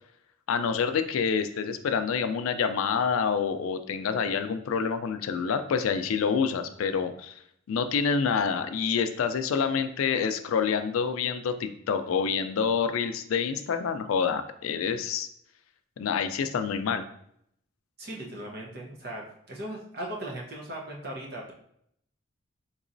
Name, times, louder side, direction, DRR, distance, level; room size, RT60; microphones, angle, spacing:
voice 1, 0.5-7.4 7.7-15.3 16.0-17.0, left 6 dB, 90° left, 9 dB, 0.4 m, -27 dB
voice 2, 18.0-21.5, right 1 dB, 50° right, -2 dB, 0.8 m, -38 dB
3.9 x 2.9 x 2.5 m, 0.70 s
head